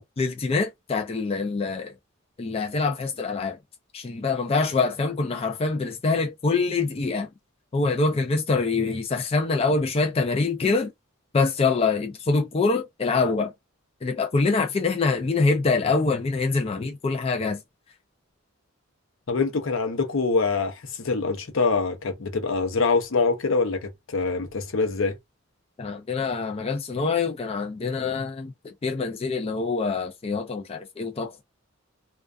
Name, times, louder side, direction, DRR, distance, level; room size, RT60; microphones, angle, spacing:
voice 1, 0.2-1.9 2.4-3.6 3.9-7.3 7.7-10.9 11.3-13.5 14.0-17.6 25.8-31.4, left 4 dB, 30° left, 0.3 m, -25 dB
voice 2, 19.3-25.1, left 4 dB, 70° left, 0.6 m, -24 dB
2.4 x 2.3 x 2.3 m
head